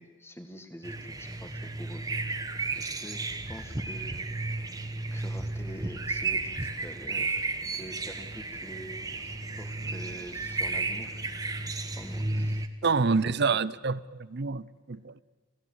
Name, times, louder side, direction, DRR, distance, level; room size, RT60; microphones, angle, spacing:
voice 1, 0.0-2.1 2.8-4.2 5.1-11.2 11.7-12.9 13.2-13.6, equal, 10° left, 1.9 m, -46 dB
sound 1, 0.8-12.7, right 3 dB, 15° right, 1.1 m, -33 dB
voice 2, 12.8-15.2, right 4 dB, 50° right, 0.6 m, -27 dB
28.0 x 16.5 x 8.1 m
head